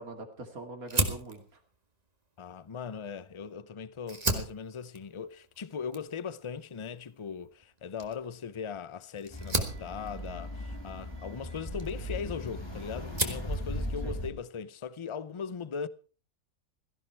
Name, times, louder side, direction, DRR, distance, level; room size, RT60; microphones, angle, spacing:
voice 1, 0.0-1.6 12.0-12.3 14.0-14.2, right 2 dB, 75° right, 3.0 m, -43 dB
Fire, 0.9-3.5 4.0-12.6 12.9-13.5, right 2 dB, 25° right, 2.0 m, -36 dB
voice 2, 2.4-15.9, left 6 dB, 35° left, 0.5 m, -39 dB
sound 1, 9.3-14.3, equal, 15° left, 3.2 m, -38 dB
17.0 x 14.5 x 4.6 m
omnidirectional pair, 1.5 m